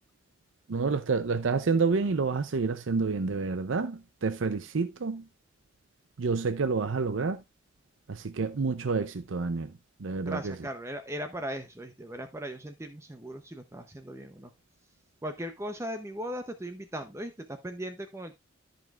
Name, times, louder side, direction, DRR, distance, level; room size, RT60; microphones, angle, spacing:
voice 1, 0.7-5.2 6.2-7.4 8.1-9.7 10.0-10.5, right 4 dB, 80° right, 0.6 m, -28 dB
voice 2, 10.3-14.5 15.2-18.4, equal, 15° right, 0.7 m, -38 dB
14.0 x 5.3 x 2.4 m
head